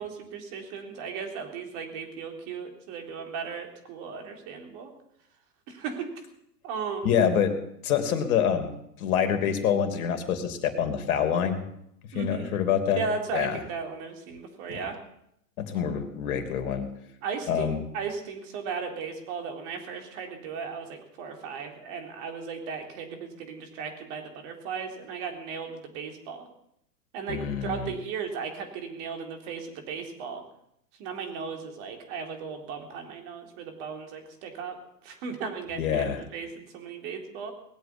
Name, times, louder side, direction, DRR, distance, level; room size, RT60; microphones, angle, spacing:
voice 1, 0.0-4.9 5.7-6.1 6.6-7.2 12.1-12.5 12.9-15.0 17.2-26.5 27.1-30.4 31.0-34.8 35.0-37.5, right 5 dB, 45° right, 4 dB, 3.9 m, -36 dB
voice 2, 7.0-7.5 7.8-11.6 12.1-13.0 13.3-13.6 15.6-16.9 17.5-17.8 27.3-27.9 35.7-36.2, left 8 dB, 55° left, 7 dB, 3.0 m, -26 dB
19.5 x 8.3 x 8.7 m, 0.76 s
hypercardioid pair, 125°, 50 cm